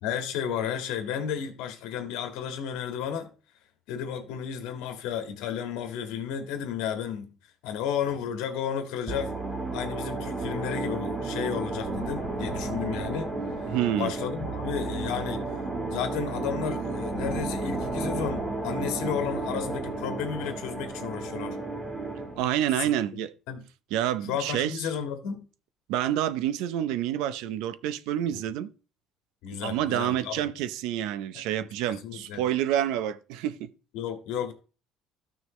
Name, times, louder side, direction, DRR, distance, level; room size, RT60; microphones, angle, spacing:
voice 1, 0.0-3.3 3.9-7.3 7.6-9.3 9.7-13.3 13.9-15.4 15.9-21.6 22.8-22.9 23.5-23.6 24.3-25.4 28.3-28.4 29.4-30.3 31.6-32.4 33.9-34.5, left 8 dB, 85° left, 1.8 m, -32 dB
sound 1, 9.1-22.4, right 2 dB, 20° right, 1.5 m, -32 dB
voice 2, 13.7-14.1 22.4-23.3 23.9-24.8 25.9-28.7 29.6-33.7, right 11 dB, 80° right, 0.6 m, -28 dB
13.5 x 6.3 x 3.2 m
cardioid pair, 180°, 0 cm